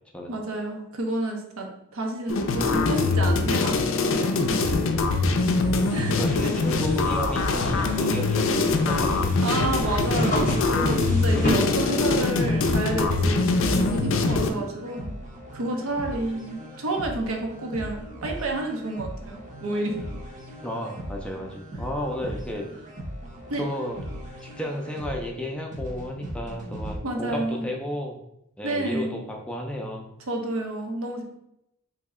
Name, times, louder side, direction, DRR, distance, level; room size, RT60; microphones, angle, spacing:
voice 1, 0.3-3.8 4.1-4.9 5.9-6.5 9.4-15.1 15.5-20.0 22.2-22.3 23.5-23.6 27.0-27.7 28.6-29.1 30.3-31.2, right 2 dB, 75° right, 2 dB, 0.7 m, -30 dB
sound 1, 2.3-14.5, left 3 dB, 65° left, 0.4 m, -23 dB
sound 2, 5.9-11.5, left 1 dB, 35° left, 0.7 m, -31 dB
voice 2, 6.1-9.3 20.6-22.7 23.6-24.0 24.4-28.2 28.6-30.1, left 1 dB, 5° left, 0 dB, 0.4 m, -32 dB
sound 3, 11.0-27.0, equal, 35° right, 0.7 m, -39 dB
3.1 x 2.7 x 3.6 m, 0.80 s
head